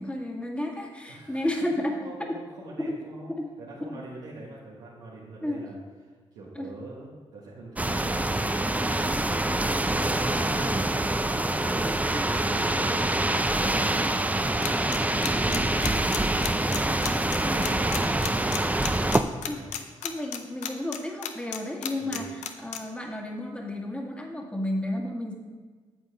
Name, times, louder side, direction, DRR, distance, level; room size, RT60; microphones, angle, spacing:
voice 1, 0.0-2.0 2.8-3.0 3.4-3.5 3.8-4.0 5.4-5.7 6.6-6.7 10.2-10.9 12.1-12.4 16.8-17.2 17.4-17.7 19.5-19.6 20.0-25.3, left 1 dB, 10° left, 0 dB, 1.8 m, -32 dB
voice 2, 1.1-9.1 9.9-14.5 14.8-16.4 17.1-18.6 19.5-19.8 22.0-22.3, right 2 dB, 90° right, -8 dB, 1.5 m, -43 dB
sound 1, 7.8-19.2, right 1 dB, 10° right, 0.6 m, -25 dB
sound 2, 14.6-21.6 21.8-22.8, left 10 dB, 85° left, 0.6 m, -32 dB
9.1 x 7.5 x 3.5 m, 1.5 s
supercardioid pair, 45°, 12 cm